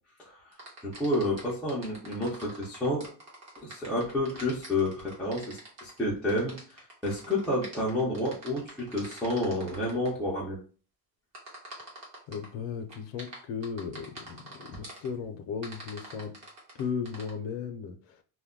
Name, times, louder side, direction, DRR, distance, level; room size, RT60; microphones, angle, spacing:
voice 1, 0.2-0.5 0.8-3.1 3.6-10.6, left 1 dB, ahead, 0.3 m, -30 dB
sound 1, 0.5-10.1 11.3-12.5 12.9-15.1 15.6-17.3, right 1 dB, 35° right, 0.9 m, -45 dB
voice 2, 12.3-16.4 16.7-18.2, left 6 dB, 75° left, 0.6 m, -36 dB
2.2 x 2.1 x 3.6 m
cardioid pair, 175°, 45 cm